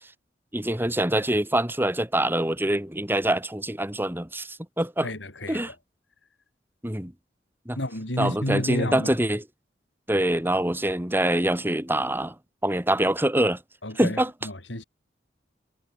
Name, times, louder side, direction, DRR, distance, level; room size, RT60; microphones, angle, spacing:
voice 1, 0.5-5.1 5.5-5.7 6.8-7.1 7.7-7.8 8.2-9.4 10.1-12.3 12.6-13.6 14.0-14.3, right 1 dB, 10° right, 2.9 m, -25 dB
voice 2, 5.0-5.8 7.8-9.2 13.8-14.8, left 1 dB, 85° left, 5.9 m, -31 dB
head